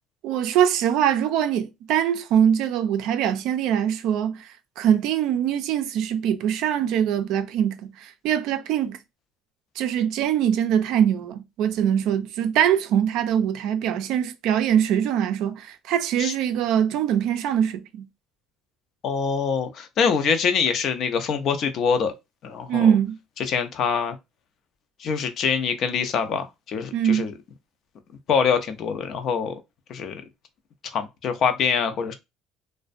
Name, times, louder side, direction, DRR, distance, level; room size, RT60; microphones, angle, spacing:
voice 1, 0.2-4.5 4.8-9.0 9.8-18.0 22.7-23.2 26.9-27.3, right 9 dB, 70° right, 0.4 m, -23 dB
voice 2, 19.0-22.1 22.4-22.9 23.4-24.2 25.0-27.3 28.3-29.6 29.9-30.2 30.9-32.1, left 6 dB, 55° left, 0.5 m, -24 dB
2.4 x 2.1 x 2.5 m
supercardioid pair, 85°, 0 cm